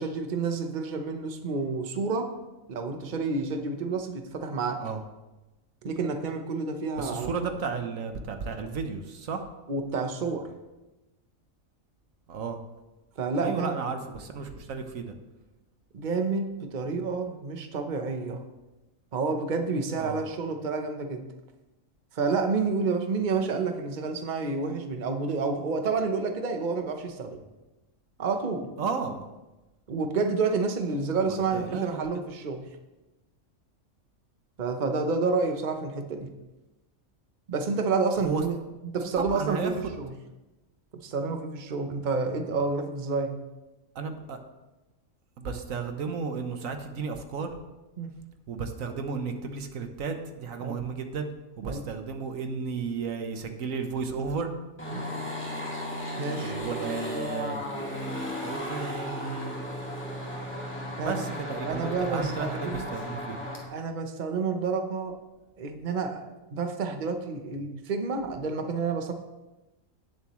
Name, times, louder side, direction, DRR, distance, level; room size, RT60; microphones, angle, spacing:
voice 1, 0.0-2.3 2.7-4.8 5.8-7.3 9.7-10.5 13.2-13.8 15.9-18.4 19.1-21.2 22.1-27.4 28.2-28.7 29.9-32.7 34.6-36.3 37.5-38.6 38.8-40.1 40.9-43.4 48.0-48.1 50.6-50.8 51.6-51.8 54.9-55.0 56.2-56.6 61.0-61.3 61.6-62.9 63.7-65.2 65.6-69.1, right 4 dB, 40° right, 6 dB, 1.0 m, -29 dB
voice 2, 7.0-9.5 12.3-12.6 13.4-15.1 20.0-20.2 28.8-29.2 31.3-32.0 38.2-38.4 39.2-39.9 43.9-44.4 45.4-47.5 48.5-51.3 51.6-54.5 56.4-57.6 58.4-59.6 61.0-63.4, right 5 dB, 90° right, 6 dB, 1.4 m, -33 dB
sound 1, 54.8-63.6, equal, 10° left, 2.0 m, -35 dB
18.0 x 7.1 x 3.1 m, 1.1 s
omnidirectional pair, 1.4 m